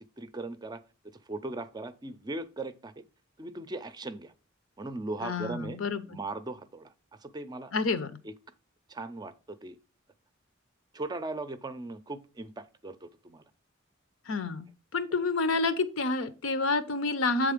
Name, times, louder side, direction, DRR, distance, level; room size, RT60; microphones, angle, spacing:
voice 1, 0.2-3.0 3.4-4.3 4.8-5.8 6.1-6.9 7.2-7.7 8.2-8.3 8.9-9.8 10.9-13.4, right 2 dB, 20° right, 0.4 m, -38 dB
voice 2, 5.2-6.0 7.7-8.1 14.3-14.7 14.9-17.5, left 3 dB, 85° left, 0.7 m, -28 dB
7.6 x 3.6 x 5.0 m
head